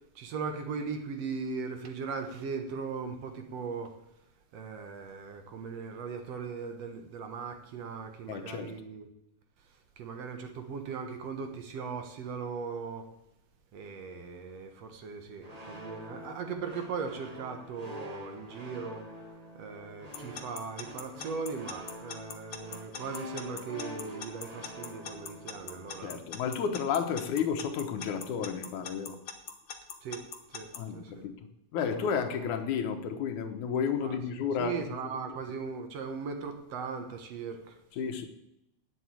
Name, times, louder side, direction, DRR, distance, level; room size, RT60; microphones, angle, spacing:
voice 1, 0.2-4.0 4.5-9.1 10.0-13.1 13.7-19.0 19.5-26.1 30.0-31.3 32.0-32.6 34.0-37.8, right 5 dB, 65° right, 6 dB, 2.2 m, -39 dB
voice 2, 8.3-8.7 26.0-29.2 30.8-34.9 38.0-38.3, left 7 dB, 90° left, 6 dB, 2.6 m, -32 dB
sound 1, 15.4-26.3, left 1 dB, 25° right, 0.9 m, -46 dB
Alarm / Clock, 20.1-30.8, left 7 dB, 55° left, 1.2 m, -41 dB
9.1 x 7.8 x 8.4 m, 0.82 s
omnidirectional pair, 3.4 m